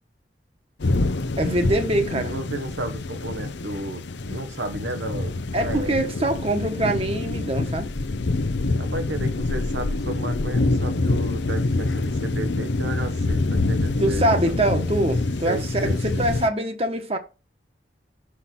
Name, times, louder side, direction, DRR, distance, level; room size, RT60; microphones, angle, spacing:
sound 1, 0.8-16.5, left 2 dB, 90° left, 0.7 m, -26 dB
voice 1, 1.4-2.3 5.5-7.9 14.0-17.2, right 1 dB, 35° right, 1.2 m, -24 dB
voice 2, 2.3-5.9 8.7-14.5 15.4-16.3, right 2 dB, 90° right, 1.2 m, -33 dB
5.7 x 5.6 x 5.9 m
head